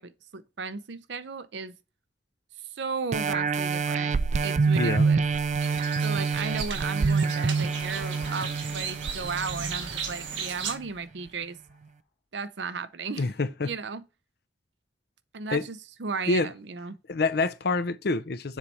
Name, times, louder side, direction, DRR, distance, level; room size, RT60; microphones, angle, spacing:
voice 1, 0.0-1.8 2.7-4.1 4.4-5.2 6.0-11.6 12.3-13.3 13.6-14.0 15.3-17.0, right 4 dB, 70° right, 0.6 m, -35 dB
sound 1, 3.1-10.3 10.8-10.9, right 4 dB, 40° right, 0.3 m, -26 dB
voice 2, 4.7-5.1 13.2-13.7 15.5-15.6 16.3-16.5 17.1-18.6, left 3 dB, 60° left, 0.6 m, -26 dB
sound 2, 5.6-10.8, right 6 dB, 90° right, 1.4 m, -36 dB
sound 3, 7.1-11.9, left 1 dB, 85° left, 1.3 m, -49 dB
7.2 x 3.3 x 4.2 m
head